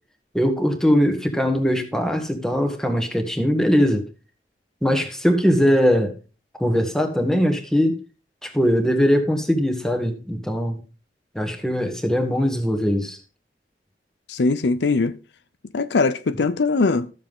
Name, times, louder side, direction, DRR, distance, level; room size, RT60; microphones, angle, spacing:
voice 1, 0.3-4.0 4.8-6.1 6.6-8.0 8.4-10.8 11.4-13.2, equal, 5° left, 1.7 m, -21 dB
voice 2, 14.3-15.2 15.7-17.1, left 3 dB, 70° left, 0.6 m, -21 dB
13.0 x 7.3 x 3.6 m
head